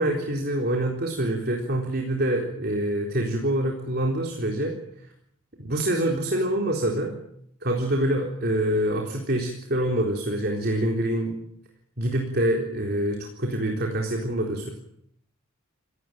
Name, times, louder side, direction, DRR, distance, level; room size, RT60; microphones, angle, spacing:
voice 1, 0.0-4.8 5.6-7.1 7.6-11.4 12.0-14.7, right 1 dB, 50° right, 1 dB, 4.0 m, -25 dB
28.5 x 18.0 x 9.1 m, 0.70 s
head